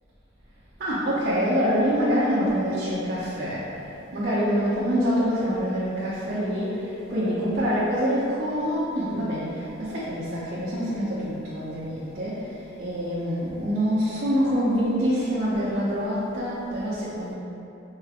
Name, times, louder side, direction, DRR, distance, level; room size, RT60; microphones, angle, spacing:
voice 1, 0.8-17.3, equal, 50° right, -11 dB, 0.7 m, -26 dB
4.7 x 3.1 x 2.4 m, 2.9 s
head